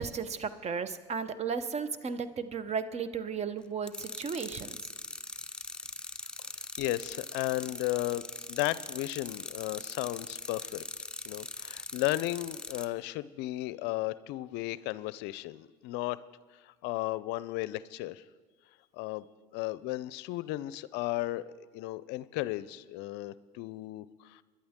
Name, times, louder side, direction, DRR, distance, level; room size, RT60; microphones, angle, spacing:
voice 1, 0.0-4.8, right 6 dB, 35° right, 13 dB, 0.9 m, -34 dB
sound 1, 3.9-12.9, left 2 dB, 5° left, 0.7 m, -42 dB
voice 2, 6.8-8.2 8.5-10.8 11.3-16.2 16.6-18.2 18.9-19.2 19.5-21.5 21.7-24.4, left 17 dB, 65° left, 18 dB, 0.5 m, -34 dB
21.0 x 11.5 x 3.6 m, 1.4 s
hypercardioid pair, 80°, 19 cm